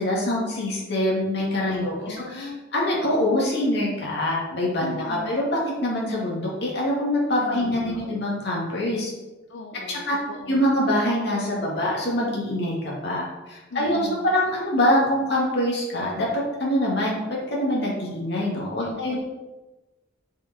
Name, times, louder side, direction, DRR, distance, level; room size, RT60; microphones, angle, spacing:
voice 1, 0.0-9.1 9.9-10.2 10.5-19.2, left 1 dB, 60° left, -4 dB, 2.4 m, -24 dB
voice 2, 1.7-2.6 4.8-5.3 7.4-8.0 9.5-10.7 13.7-14.2 18.8-19.2, left 3 dB, 80° left, 3 dB, 0.6 m, -39 dB
7.5 x 4.9 x 4.4 m, 1.1 s
head